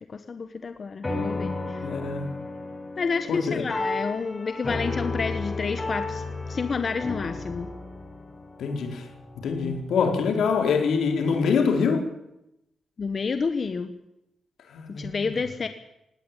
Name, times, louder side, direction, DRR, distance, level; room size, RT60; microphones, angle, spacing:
voice 1, 0.1-1.9 3.0-7.7 13.0-13.9 14.9-15.7, left 5 dB, 40° left, 9 dB, 1.4 m, -29 dB
sound 1, 1.0-9.8, left 3 dB, 20° left, 5.3 m, -33 dB
voice 2, 1.8-2.4 3.3-3.6 8.6-9.1 9.4-12.1 14.7-15.3, left 5 dB, 80° left, 5 dB, 4.2 m, -25 dB
18.0 x 18.0 x 9.1 m, 0.87 s
cardioid pair, 115°, 0 cm